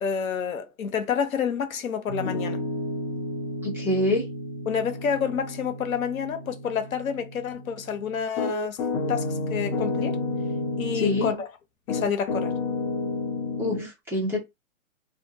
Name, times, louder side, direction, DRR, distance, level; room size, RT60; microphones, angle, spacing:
voice 1, 0.0-2.6 4.7-10.2 10.8-11.5 11.9-12.5, left 7 dB, 85° left, 0.8 m, -29 dB
Piano, 2.1-11.4 11.9-13.9, left 2 dB, 30° left, 0.7 m, -31 dB
voice 2, 3.6-4.3 10.9-11.3 13.6-14.4, left 1 dB, 5° right, 0.7 m, -25 dB
2.5 x 2.2 x 2.7 m
hypercardioid pair, 135°, 40 cm